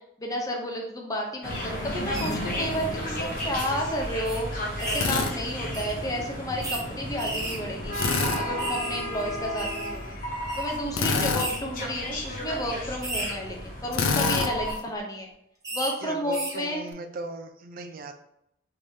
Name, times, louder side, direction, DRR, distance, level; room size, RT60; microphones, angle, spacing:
voice 1, 0.2-8.0 8.3-10.2 10.6-15.3 15.7-16.8, equal, 20° left, 0 dB, 0.6 m, -31 dB
sound 1, 1.4-14.7, equal, 45° left, 0.9 m, -33 dB
sound 2, 2.1-2.3 3.1-3.3 3.6-3.7 4.2-4.4 4.8-5.2 5.7-5.9 6.6-6.8 7.2-9.0 9.3-9.9 10.5-10.7 11.4-11.6 12.1-12.3 13.0-13.3 14.5-14.8 15.6-15.9 16.3-16.6, right 2 dB, 20° right, 0.7 m, -34 dB
Drill, 4.9-5.3 7.9-8.4 10.9-11.5 13.9-14.5, left 5 dB, 75° left, 0.4 m, -25 dB
voice 2, 16.0-18.1, right 2 dB, 50° right, 7 dB, 0.4 m, -38 dB
3.4 x 3.2 x 2.7 m, 0.76 s
head